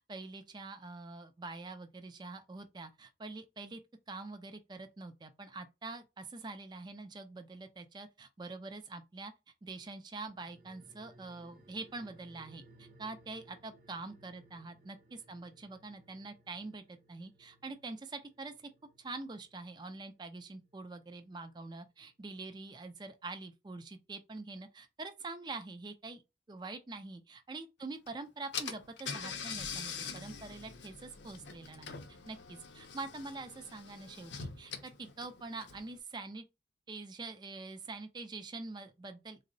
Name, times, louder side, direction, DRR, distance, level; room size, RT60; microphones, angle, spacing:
voice 1, 0.1-3.8 4.1-9.3 9.6-18.7 19.0-26.2 26.5-32.0 32.3-36.4 36.9-39.4, right 3 dB, 25° right, 0.3 m, -45 dB
sound 1, 10.3-21.1 21.4-21.5, right 1 dB, 45° right, 0.7 m, -62 dB
Car / Engine, 28.1-28.2 28.5-36.0, left 6 dB, 90° left, 0.5 m, -44 dB
3.5 x 2.0 x 2.6 m
head